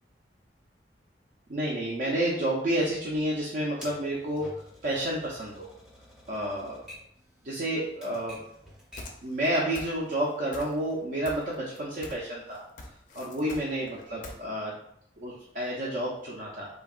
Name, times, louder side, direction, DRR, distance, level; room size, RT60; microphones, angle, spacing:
voice 1, 1.5-4.5 4.8-5.7 6.3-6.8 7.4-8.4 9.2-12.6 13.2-14.7 15.2-16.7, right 1 dB, 50° right, -5 dB, 0.4 m, -30 dB
Typewriter, 3.8-9.2, equal, 5° right, 0.7 m, -50 dB
sound 1, 9.0-9.5 9.8-10.2 10.5-11.0 11.3-12.3 12.5-14.4, left 2 dB, 45° left, 0.4 m, -43 dB
3.4 x 2.2 x 2.3 m, 0.72 s
head